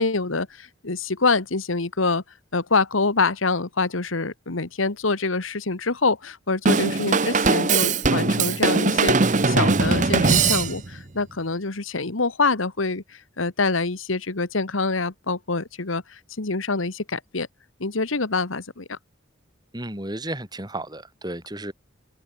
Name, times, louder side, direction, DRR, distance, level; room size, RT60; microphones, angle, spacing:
voice 1, 0.0-2.2 2.5-17.5 17.8-19.0, left 3 dB, 90° left, 1.6 m, -25 dB
Drum kit / Drum, 6.7-11.0, right 4 dB, 40° right, 0.9 m, -20 dB
voice 2, 19.7-21.7, right 1 dB, 20° right, 5.2 m, -33 dB
head